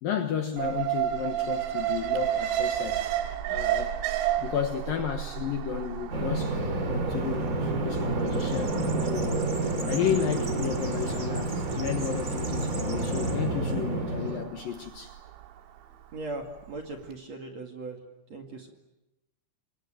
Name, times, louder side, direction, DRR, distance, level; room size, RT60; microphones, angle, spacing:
voice 1, 0.0-3.1 3.5-4.0 4.4-9.5 9.9-15.2, left 8 dB, 65° left, 2.5 m, -32 dB
Alarm, 0.6-16.7 17.0-17.1, right 11 dB, 90° right, 3.9 m, -33 dB
Bird vocalization bird call bird song, 6.1-14.4, right 2 dB, 25° right, 2.4 m, -29 dB
voice 2, 16.1-18.0 18.3-18.7, right 2 dB, 45° right, 2.7 m, -38 dB
28.0 x 23.5 x 7.7 m
omnidirectional pair, 5.4 m